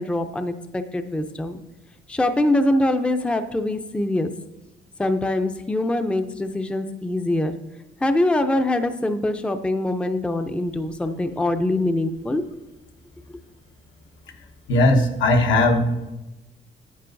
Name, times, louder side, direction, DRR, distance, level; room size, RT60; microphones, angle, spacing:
voice 1, 0.0-1.6 2.1-4.3 5.0-7.5 8.0-12.4, left 1 dB, 5° left, 7 dB, 0.5 m, -23 dB
voice 2, 14.7-16.1, left 1 dB, 75° left, 3 dB, 1.1 m, -18 dB
10.0 x 8.8 x 2.6 m, 1.0 s
cardioid pair, 90°, 20 cm